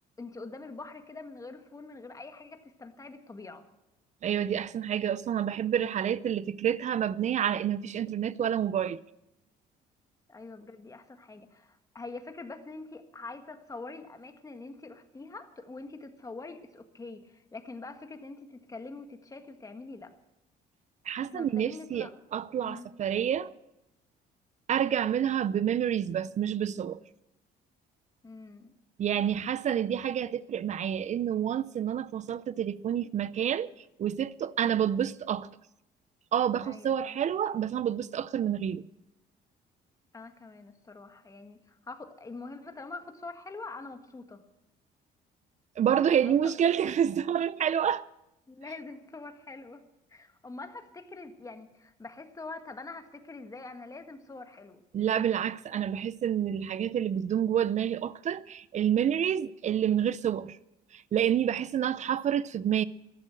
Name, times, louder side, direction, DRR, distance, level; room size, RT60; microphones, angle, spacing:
voice 1, 0.2-3.7 10.3-20.1 21.3-22.1 22.6-22.9 28.2-28.7 29.7-29.8 36.6-37.2 40.1-44.4 46.2-46.5 48.5-49.8 50.1-54.8, left 3 dB, 20° left, 1.7 m, -44 dB
voice 2, 4.2-9.0 21.1-23.5 24.7-27.0 29.0-33.7 34.0-35.5 36.3-38.9 45.8-48.1 54.9-60.6 60.9-62.8, right 9 dB, 45° right, 0.6 m, -28 dB
14.0 x 11.5 x 7.6 m
cardioid pair, 110°, 17 cm